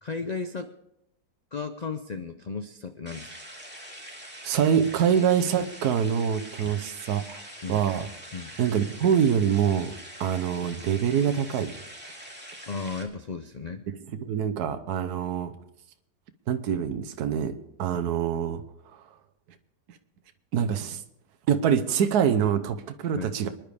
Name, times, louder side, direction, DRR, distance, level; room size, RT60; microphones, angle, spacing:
voice 1, 0.0-0.7 1.5-3.3 6.6-6.7 7.6-7.8 8.3-8.6 12.7-13.9 23.1-23.3, left 4 dB, 75° left, 8 dB, 0.3 m, -35 dB
sound 1, 3.1-13.0, right 1 dB, 5° right, 2.2 m, -44 dB
voice 2, 4.4-7.4 7.7-8.1 8.6-9.9 10.2-11.7 14.1-15.5 16.5-17.5 17.8-18.6 18.9-19.0 20.5-21.0 21.5-23.5, right 8 dB, 75° right, 9 dB, 1.4 m, -25 dB
25.0 x 10.5 x 3.4 m, 0.82 s
omnidirectional pair, 1.7 m